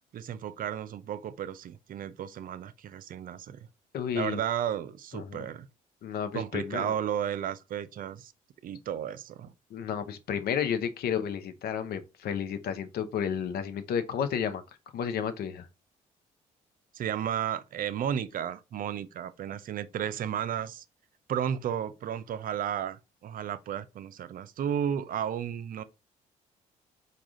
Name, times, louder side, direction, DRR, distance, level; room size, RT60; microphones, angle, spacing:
voice 1, 0.1-3.6 4.1-5.7 6.3-8.3 8.6-9.5 16.9-20.8 21.3-25.8, right 9 dB, 55° right, 0.5 m, -33 dB
voice 2, 3.9-4.4 5.1-5.5 6.0-7.0 9.7-14.6 14.9-15.7, left 8 dB, 65° left, 0.6 m, -32 dB
4.8 x 2.4 x 3.7 m
hypercardioid pair, 55°, 17 cm